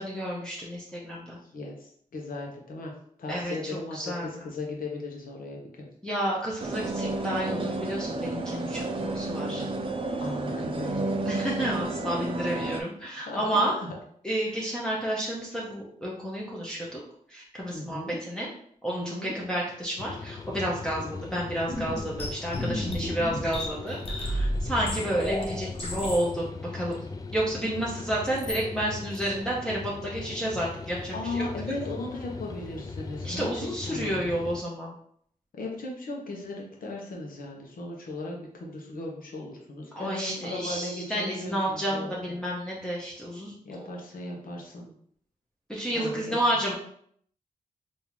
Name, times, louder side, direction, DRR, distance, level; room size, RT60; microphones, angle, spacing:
voice 1, 0.0-1.4 3.3-4.3 6.0-9.6 11.2-13.8 14.2-17.0 17.3-18.5 18.8-27.1 27.3-31.4 33.2-34.9 40.0-43.9 45.7-46.8, right 1 dB, 5° left, -6 dB, 0.8 m, -31 dB
voice 2, 1.4-2.9 3.2-5.9 10.2-11.1 13.2-13.4 14.5-14.6 17.7-18.2 18.9-19.3 31.1-33.5 33.9-34.3 35.5-42.1 43.6-44.9 46.0-46.3, left 2 dB, 80° left, -1 dB, 0.9 m, -37 dB
sound 1, 6.6-12.8, right 2 dB, 35° right, 0.4 m, -31 dB
sound 2, 20.0-34.6, left 4 dB, 25° left, 0.3 m, -39 dB
sound 3, 21.7-26.3 26.9-27.0 28.3-28.6 29.1-29.4, equal, 40° left, 0.8 m, -32 dB
3.6 x 2.7 x 3.0 m, 0.64 s
cardioid pair, 90°, 15 cm